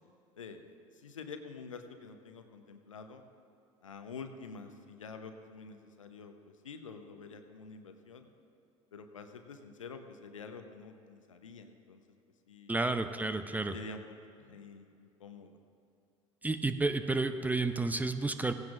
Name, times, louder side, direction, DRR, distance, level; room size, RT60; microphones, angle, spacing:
voice 1, 0.3-3.2 3.8-8.3 8.9-12.0 12.5-12.8 13.7-14.0 14.4-15.6, left 5 dB, 80° left, 7 dB, 0.9 m, -48 dB
voice 2, 12.7-13.7 16.4-18.5, right 3 dB, 10° right, 10 dB, 0.6 m, -31 dB
17.5 x 16.0 x 2.5 m, 2.5 s
figure-of-eight pair, 65°, 16 cm